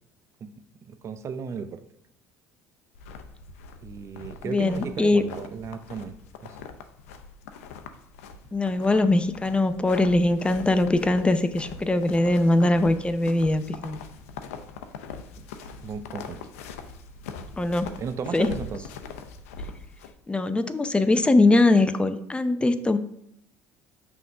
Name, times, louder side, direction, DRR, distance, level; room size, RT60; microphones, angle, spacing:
voice 1, 0.8-1.8 3.8-6.6 15.4-15.5 15.8-16.4 18.0-18.8, right 6 dB, 40° right, 11 dB, 0.5 m, -35 dB
sound 1, 2.9-20.1, left 5 dB, 85° left, 0.6 m, -42 dB
voice 2, 4.4-5.2 8.5-14.0 17.6-17.9 18.3-18.5 20.3-23.0, left 2 dB, 15° left, 11 dB, 0.6 m, -22 dB
5.8 x 3.7 x 6.1 m, 0.74 s
hypercardioid pair, 70°, 8 cm